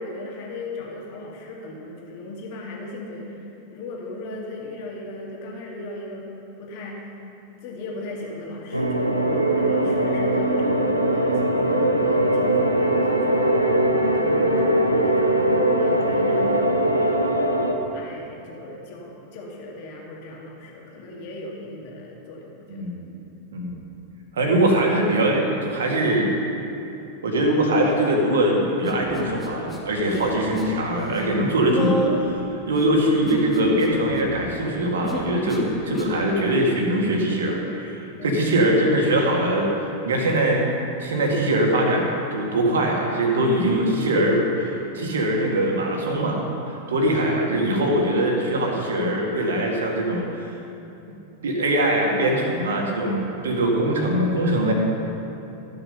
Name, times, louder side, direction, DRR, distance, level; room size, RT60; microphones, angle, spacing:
voice 1, 0.0-6.3 6.6-7.2 7.6-17.4 17.9-23.5 38.2-38.6, left 1 dB, 50° left, -2 dB, 2.2 m, -37 dB
sound 1, 8.7-17.7, right 1 dB, 90° right, 0.8 m, -21 dB
voice 2, 22.7-23.0 23.5-23.8 24.3-26.3 27.2-32.4 32.7-39.7 40.0-40.7 41.0-46.4 46.9-50.5 51.4-54.7, right 1 dB, 65° right, 0 dB, 1.9 m, -22 dB
Human voice, 28.8-29.8 30.1-30.8 31.1-36.3, left 1 dB, 15° left, 1.8 m, -30 dB
14.0 x 6.9 x 5.5 m, 2.9 s
figure-of-eight pair, 90°, 0 cm